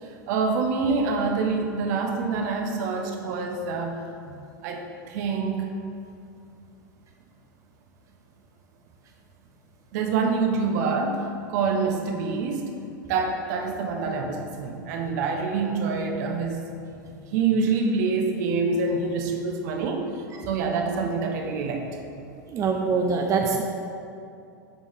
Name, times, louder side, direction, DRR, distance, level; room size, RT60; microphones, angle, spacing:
voice 1, 0.0-3.9 4.6-5.7 9.9-12.6 13.1-16.6 17.3-20.1 20.4-21.9, right 4 dB, 60° right, 3 dB, 1.0 m, -26 dB
voice 2, 22.5-23.6, right 5 dB, 30° right, 2 dB, 0.6 m, -24 dB
8.1 x 5.3 x 3.6 m, 2.6 s
hypercardioid pair, 95°, 10 cm